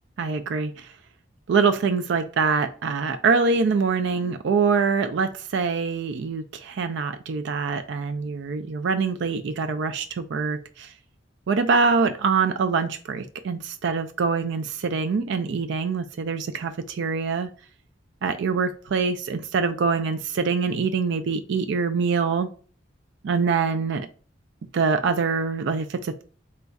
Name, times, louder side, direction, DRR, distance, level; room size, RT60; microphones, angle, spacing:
voice 1, 0.2-0.9 1.5-10.9 11.5-17.5 18.2-22.5 23.2-24.1 24.7-26.2, right 5 dB, 65° right, 0.4 m, -24 dB
4.3 x 2.3 x 3.9 m
head